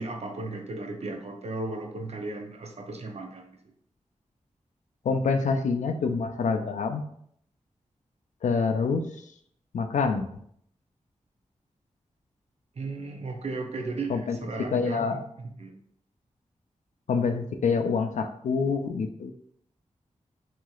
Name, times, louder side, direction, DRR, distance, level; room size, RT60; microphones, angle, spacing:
voice 1, 0.0-3.6 12.8-15.8, right 3 dB, 55° right, 3 dB, 0.6 m, -35 dB
voice 2, 5.0-7.0 8.4-9.0 9.7-10.3 14.1-14.4 14.7-15.2 17.1-19.3, left 5 dB, 75° left, 6 dB, 0.4 m, -26 dB
3.0 x 2.8 x 2.3 m, 0.67 s
cardioid pair, 55°, 13 cm